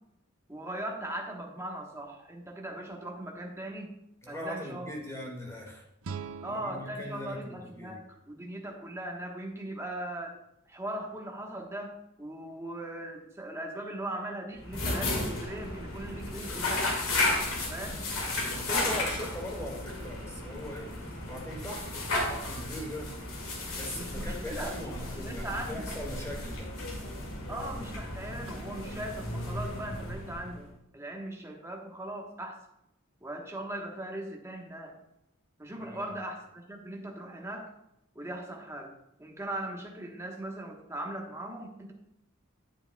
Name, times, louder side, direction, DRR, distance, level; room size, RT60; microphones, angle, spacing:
voice 1, 0.5-3.9 4.3-4.9 6.4-10.4 10.7-17.0 17.7-18.0 23.9-24.8 25.2-25.9 27.5-32.6 33.2-35.0 35.6-37.7 38.1-38.9 39.2-41.9, right 1 dB, 15° right, 1 dB, 1.2 m, -39 dB
voice 2, 4.2-5.9 6.5-8.0 18.3-20.9 21.3-26.7 35.8-36.1, left 1 dB, 15° left, -1 dB, 1.9 m, -40 dB
sound 1, 6.0-9.0, right 6 dB, 75° right, 0.5 m, -45 dB
sound 2, 14.6-30.7, left 2 dB, 85° left, 2.1 m, -34 dB
10.5 x 8.8 x 2.3 m, 0.84 s
head